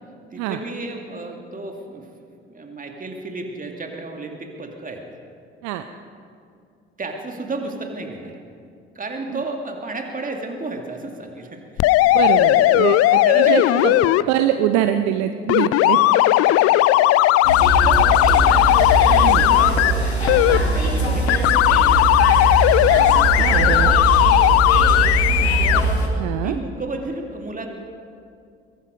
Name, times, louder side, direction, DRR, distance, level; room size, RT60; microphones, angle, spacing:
voice 1, 0.3-2.1 2.5-5.0 7.0-8.4 8.9-11.9 13.2-14.0 16.5-16.6 17.8-22.3 23.4-23.8 24.8-25.9 26.4-27.7, right 2 dB, 25° right, 3 dB, 2.4 m, -32 dB
sound 1, 11.8-14.2 15.5-19.9 20.3-20.6 21.3-25.8, left 15 dB, 50° left, 0.5 m, -16 dB
voice 2, 12.1-13.9 14.3-16.0 19.2-19.4 23.3-24.0 26.1-26.5, right 11 dB, 60° right, 9 dB, 0.7 m, -23 dB
sound 2, 17.4-26.1, right 2 dB, 85° left, 1.5 m, -21 dB
22.0 x 11.5 x 5.3 m, 2.4 s
figure-of-eight pair, 50°, 32 cm